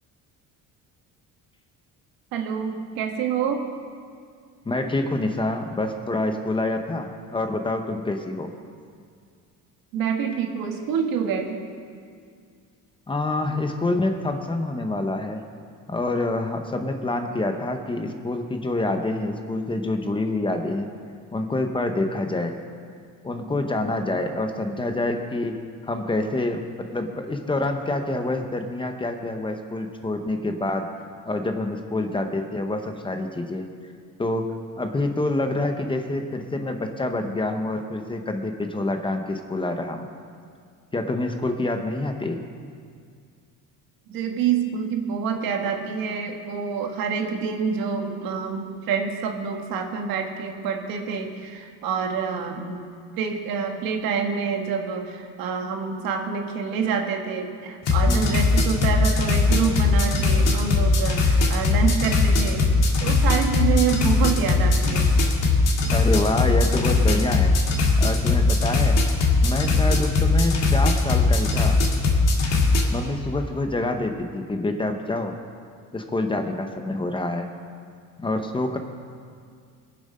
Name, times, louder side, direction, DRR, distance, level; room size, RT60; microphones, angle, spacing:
voice 1, 2.3-3.7 9.9-11.7 44.1-52.9 53.2-62.7 63.0-65.1, right 6 dB, 85° right, 3 dB, 1.6 m, -27 dB
voice 2, 4.7-8.5 13.1-15.4 15.9-20.9 21.3-22.5 23.2-25.6 25.8-30.9 31.3-33.7 34.2-40.1 40.9-42.4 58.1-58.4 65.9-67.5 68.0-69.0 69.4-71.8 72.9-75.3 75.9-77.5 78.2-78.8, left 2 dB, 15° left, 5 dB, 0.8 m, -27 dB
sound 1, 57.8-72.8, left 3 dB, 50° left, 1.9 m, -20 dB
21.0 x 7.4 x 5.5 m, 2.2 s
cardioid pair, 150°, 34 cm